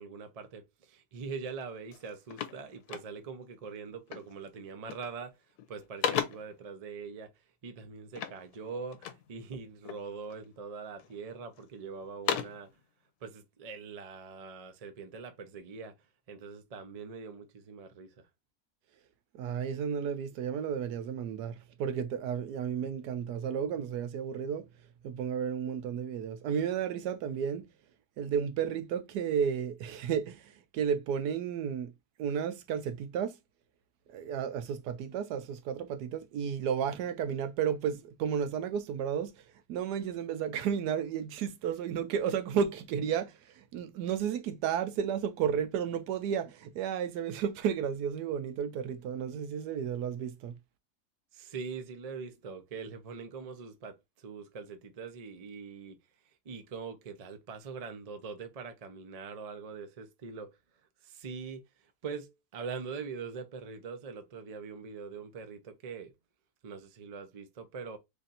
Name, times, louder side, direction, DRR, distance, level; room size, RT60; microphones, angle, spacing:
voice 1, 0.0-5.3 5.7-7.3 7.6-12.7 13.2-15.9 16.3-18.3 51.3-56.0 56.4-60.5 61.0-61.6 62.0-66.1 66.6-68.0, right 5 dB, 75° right, 0.3 m, -43 dB
sound 1, 1.5-1.6 1.9-3.5 4.1-4.4 4.7-5.2 5.6-6.6 8.1-9.3 9.8-10.5 11.0-11.7 12.0-12.7, left 8 dB, 75° left, 1.2 m, -36 dB
voice 2, 19.4-24.7 25.0-27.6 28.2-31.9 32.2-33.3 34.1-39.3 39.7-43.3 43.7-50.5, right 8 dB, 90° right, 1.2 m, -32 dB
3.3 x 2.5 x 4.0 m
omnidirectional pair, 1.7 m